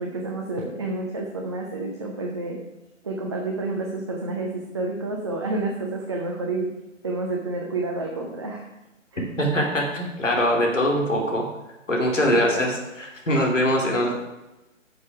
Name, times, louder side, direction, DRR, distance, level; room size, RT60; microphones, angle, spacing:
voice 1, 0.0-2.6 3.0-6.8 7.0-8.7 9.1-9.3 12.3-12.6, right 2 dB, 20° right, 0 dB, 0.7 m, -29 dB
voice 2, 9.4-11.5 11.9-14.1, equal, 70° left, 0 dB, 2.9 m, -22 dB
10.5 x 6.6 x 4.7 m, 1.0 s
figure-of-eight pair, 140°, 39 cm